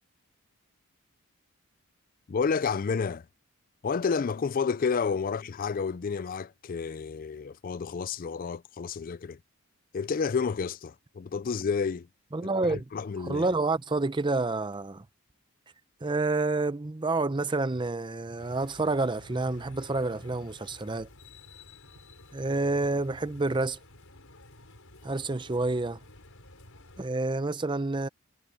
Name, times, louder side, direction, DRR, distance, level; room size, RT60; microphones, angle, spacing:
voice 1, 2.3-3.3 3.8-9.4 9.9-12.1 12.6-13.5, left 5 dB, 40° left, 0.4 m, -30 dB
voice 2, 12.3-12.9 13.3-15.0 16.0-21.1 22.3-23.8 25.0-26.0 27.0-28.1, right 3 dB, 20° right, 0.6 m, -28 dB
sound 1, 18.4-27.1, left 2 dB, 65° left, 5.4 m, -51 dB
head